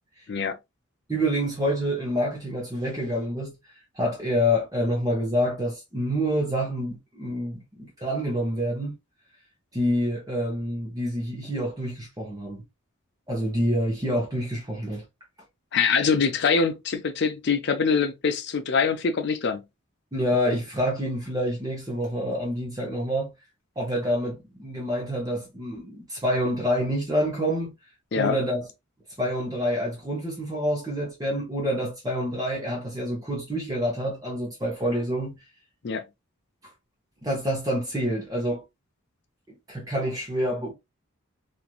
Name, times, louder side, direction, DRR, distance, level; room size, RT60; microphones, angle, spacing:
voice 1, 1.1-3.6 3.9-8.9 9.7-12.6 13.3-15.0 20.1-23.3 23.8-27.7 28.2-28.7 29.2-35.4 37.2-38.6 39.7-40.7, equal, 15° right, 0.8 m, -27 dB
voice 2, 15.7-19.6 28.1-28.4 35.8-36.0, left 5 dB, 55° left, 0.5 m, -24 dB
3.1 x 2.5 x 2.3 m
head